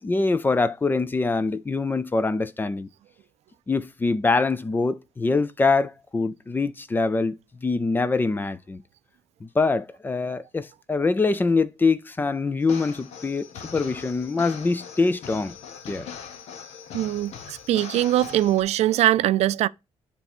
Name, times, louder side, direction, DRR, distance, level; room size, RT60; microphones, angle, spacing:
voice 1, 0.0-2.9 3.7-8.8 9.4-15.6 15.9-16.1, left 3 dB, 20° left, 0.5 m, -24 dB
sound 1, 12.6-18.6, left 7 dB, 90° left, 1.1 m, -41 dB
voice 2, 16.9-19.7, right 13 dB, 85° right, 0.4 m, -22 dB
9.7 x 3.4 x 4.3 m
cardioid pair, 150°, 11 cm